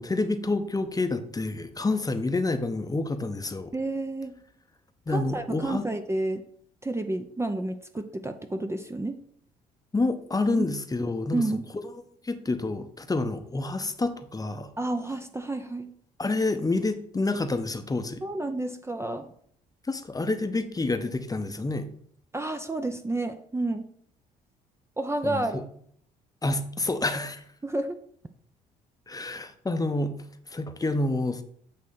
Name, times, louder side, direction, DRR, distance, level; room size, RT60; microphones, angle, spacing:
voice 1, 0.0-3.7 5.1-5.9 9.9-11.4 12.2-14.7 16.2-18.2 19.9-21.9 25.2-25.4 26.4-27.4 29.1-30.1 30.5-31.4, left 2 dB, 20° left, 8 dB, 0.8 m, -28 dB
voice 2, 3.7-4.4 5.1-6.4 6.8-9.2 10.6-10.7 11.3-11.6 14.8-15.9 18.2-19.3 22.3-23.9 25.0-25.7 27.6-28.0, right 2 dB, 15° right, 7 dB, 0.7 m, -30 dB
8.5 x 3.2 x 5.6 m, 0.64 s
hypercardioid pair, 55°, 20 cm